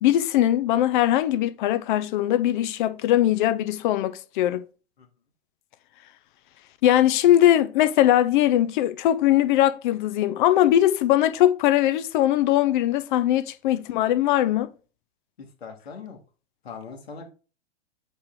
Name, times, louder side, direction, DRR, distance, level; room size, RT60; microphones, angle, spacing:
voice 1, 0.0-4.6 6.8-14.7, left 12 dB, 50° left, 0.9 m, -20 dB
voice 2, 15.4-16.2 16.6-17.3, left 5 dB, 75° left, 1.9 m, -40 dB
7.8 x 3.4 x 3.8 m
hypercardioid pair, 115°, 31 cm